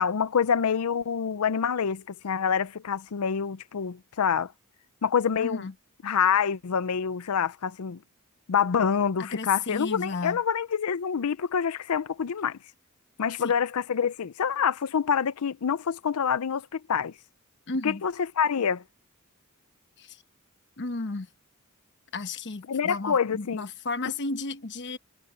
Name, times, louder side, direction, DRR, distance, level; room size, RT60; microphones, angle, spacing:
voice 1, 0.0-4.5 5.0-5.7 6.0-8.0 8.5-12.6 13.2-17.1 17.8-18.8 22.7-23.7, left 7 dB, 85° left, 0.5 m, -26 dB
voice 2, 5.4-5.7 9.2-10.4 13.4-13.5 17.7-18.0 20.0-20.2 20.8-21.3 22.1-25.0, left 3 dB, 55° left, 1.1 m, -33 dB
head